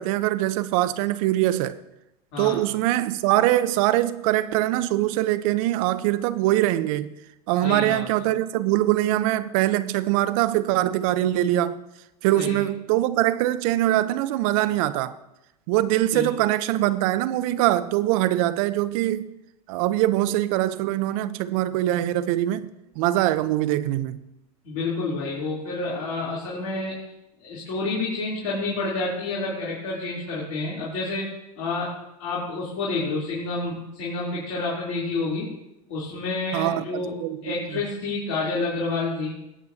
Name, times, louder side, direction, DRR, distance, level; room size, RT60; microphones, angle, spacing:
voice 1, 0.0-1.8 2.4-7.1 7.5-11.8 12.2-15.2 15.7-19.3 19.7-22.7 23.0-24.2 36.5-37.8, right 14 dB, 55° right, 0.7 m, -23 dB
voice 2, 7.6-8.0 12.4-12.6 16.1-16.3 24.6-27.0 27.4-31.3 31.6-35.5 35.9-37.1 37.4-39.4, left 3 dB, 60° left, 3.4 m, -29 dB
19.0 x 8.3 x 2.8 m
hypercardioid pair, 100°, 21 cm